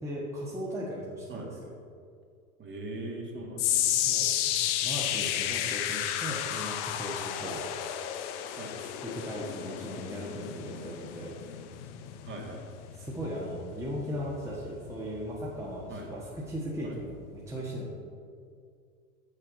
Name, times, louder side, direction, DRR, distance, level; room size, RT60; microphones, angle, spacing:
voice 1, 0.0-1.7 4.1-7.6 8.8-11.3 13.0-18.1, equal, 5° right, -5 dB, 1.3 m, -37 dB
voice 2, 2.6-4.0 7.4-7.6 8.6-8.7 12.2-12.6 15.9-16.1 16.8-17.0, right 2 dB, 25° right, -1 dB, 1.9 m, -40 dB
sound 1, 3.6-15.9 16.2-16.6 17.2-17.3, left 11 dB, 50° left, 0.7 m, -32 dB
7.5 x 6.6 x 4.9 m, 2.3 s
figure-of-eight pair, 80°, 44 cm